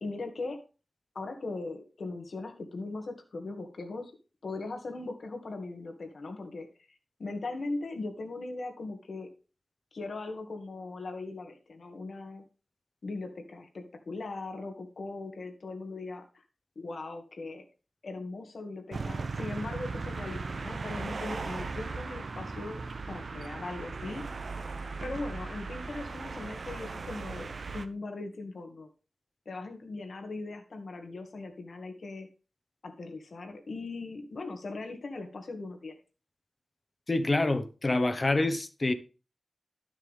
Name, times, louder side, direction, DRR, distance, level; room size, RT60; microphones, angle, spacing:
voice 1, 0.0-0.6 1.2-4.1 4.4-9.3 9.9-12.4 13.0-16.4 16.8-17.6 18.0-22.8 23.1-24.3 25.0-28.9 29.5-32.3 32.8-36.0, left 3 dB, 75° left, 2.1 m, -39 dB
sound 1, 18.9-27.9, right 4 dB, 70° right, 0.9 m, -37 dB
voice 2, 37.1-38.9, left 2 dB, 40° left, 1.3 m, -27 dB
12.0 x 7.4 x 3.6 m
wide cardioid pair, 75°, 0 cm